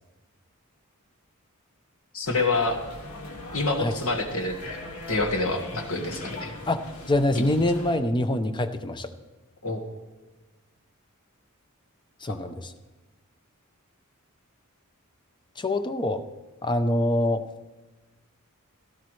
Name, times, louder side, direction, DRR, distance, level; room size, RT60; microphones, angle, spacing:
voice 1, 2.1-2.8 3.5-4.6 5.1-6.5 7.3-7.4 9.6-9.8 12.3-12.4, left 3 dB, 65° left, 4 dB, 1.7 m, -27 dB
sound 1, 2.2-8.0, left 1 dB, 85° left, 1.9 m, -41 dB
voice 2, 6.7-9.1 12.2-12.7 15.6-16.2 16.6-17.4, left 1 dB, 20° left, 9 dB, 0.6 m, -25 dB
16.5 x 13.5 x 3.2 m, 1.1 s
head